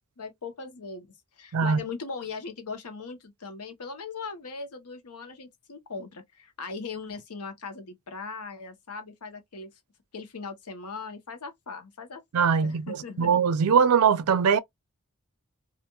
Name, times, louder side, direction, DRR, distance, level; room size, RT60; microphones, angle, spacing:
voice 1, 0.2-1.1 1.4-9.7 10.1-13.3, left 4 dB, 85° left, 0.9 m, -39 dB
voice 2, 12.3-14.6, right 6 dB, 70° right, 0.4 m, -22 dB
2.9 x 2.4 x 2.2 m
head